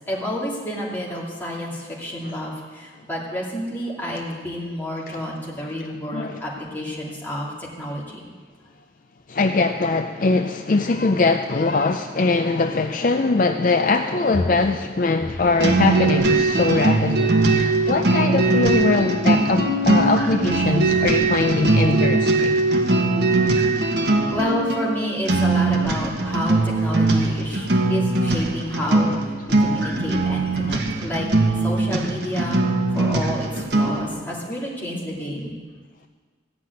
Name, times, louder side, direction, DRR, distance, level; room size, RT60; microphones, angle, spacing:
voice 1, 0.1-8.2 17.8-18.0 24.2-29.2 29.6-32.6 32.9-35.5, equal, 10° left, -5 dB, 2.5 m, -30 dB
voice 2, 5.8-6.4 9.3-22.5, left 3 dB, 45° left, 6 dB, 0.4 m, -22 dB
sound 1, 15.6-34.1, right 2 dB, 60° right, 1.3 m, -20 dB
15.0 x 6.0 x 9.5 m, 1.5 s
head